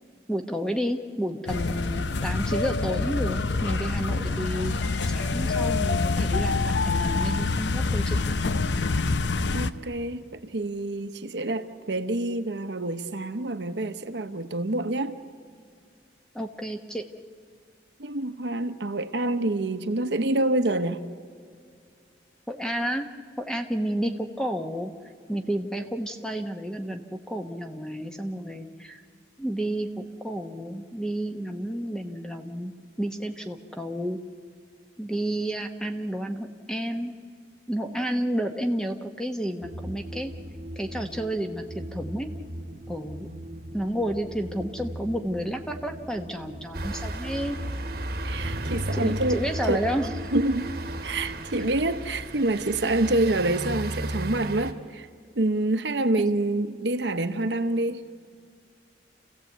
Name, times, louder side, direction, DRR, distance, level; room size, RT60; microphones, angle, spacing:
voice 1, 0.3-4.7 5.1-8.5 16.3-17.1 22.5-23.1 23.4-24.9 25.3-29.0 29.4-32.7 33.0-34.2 35.0-37.1 37.7-40.3 40.8-42.3 42.9-43.3 43.7-47.6 48.9-50.1 51.6-51.7, equal, 5° left, 1.0 m, -31 dB
sound 1, 1.5-9.7, left 3 dB, 75° left, 0.7 m, -26 dB
voice 2, 9.5-15.2 18.0-21.0 48.2-49.8 50.3-50.7 51.0-55.1 55.4-58.0, right 2 dB, 70° right, 1.0 m, -27 dB
sound 2, 39.6-51.5, equal, 40° right, 1.2 m, -39 dB
sound 3, 46.7-54.7, right 1 dB, 55° right, 1.3 m, -34 dB
28.0 x 15.5 x 8.2 m
head